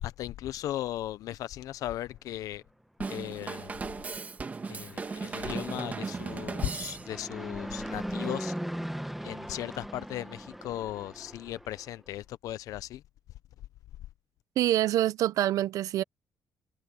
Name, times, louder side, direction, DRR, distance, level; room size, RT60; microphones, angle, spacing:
voice 1, 0.0-2.6 3.1-3.7 4.7-8.5 9.2-13.0, left 13 dB, 80° left, 0.6 m, -37 dB
Drum kit / Drum, 3.0-7.4, right 4 dB, 25° right, 1.6 m, -37 dB
Fixed-wing aircraft airplane, 4.5-11.9, equal, 5° right, 1.1 m, -39 dB
voice 2, 14.6-16.0, right 13 dB, 75° right, 0.7 m, -26 dB
cardioid pair, 125°, 6 cm